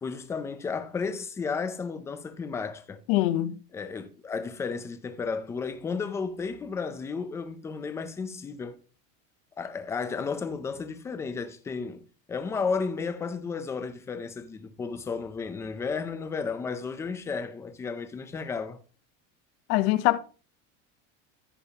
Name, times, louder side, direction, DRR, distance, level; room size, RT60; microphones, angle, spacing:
voice 1, 0.0-3.0 3.7-8.8 9.6-12.0 12.3-18.8, left 5 dB, 10° left, 0.4 m, -33 dB
voice 2, 3.1-3.5 19.7-20.2, left 16 dB, 55° left, 0.8 m, -23 dB
14.5 x 5.3 x 2.9 m
cardioid pair, 175°, 36 cm